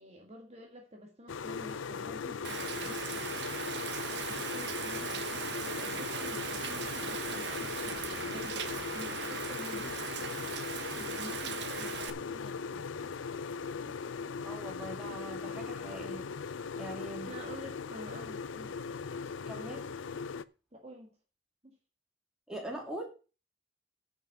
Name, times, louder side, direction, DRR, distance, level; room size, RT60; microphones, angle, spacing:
voice 1, 0.0-3.4 4.3-10.1 10.9-12.9 13.8-13.9 17.3-18.7 20.7-21.1 21.6-21.8, equal, 35° right, 1 dB, 1.7 m, -49 dB
sound 1, 1.3-20.4, left 5 dB, 90° left, 0.5 m, -39 dB
Rain, 2.4-12.1, right 6 dB, 60° right, 1.2 m, -39 dB
voice 2, 14.4-17.3 19.5-19.8 22.5-23.1, right 1 dB, 5° right, 0 dB, 2.8 m, -42 dB
10.5 x 5.9 x 6.5 m, 0.34 s
head